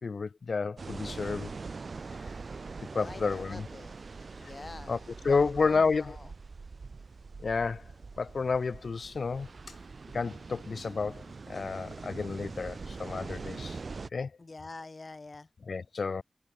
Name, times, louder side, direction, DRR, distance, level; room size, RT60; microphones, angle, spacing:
voice 1, 0.0-1.5 2.9-3.7 4.4-4.5 4.9-5.0 5.2-6.2 7.4-7.9 8.2-9.7 10.1-13.8 14.1-14.3 15.7-16.2, left 4 dB, 75° left, 3.0 m, -31 dB
sound 1, 0.8-14.1, right 4 dB, 65° right, 3.4 m, -43 dB
voice 2, 2.9-4.0 4.4-6.3 14.4-15.5, left 3 dB, 45° left, 4.0 m, -46 dB
wide cardioid pair, 95°, 0 cm